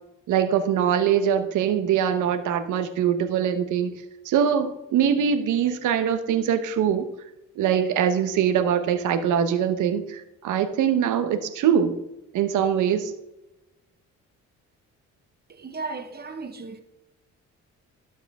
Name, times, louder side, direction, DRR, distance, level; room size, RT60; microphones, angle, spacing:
voice 1, 0.3-4.0 4.2-7.1 7.6-12.0 12.3-13.1, right 8 dB, 85° right, 1.1 m, -23 dB
voice 2, 15.5-16.8, right 4 dB, 30° right, 1.3 m, -35 dB
12.5 x 6.5 x 3.6 m
cardioid pair, 90°, 30 cm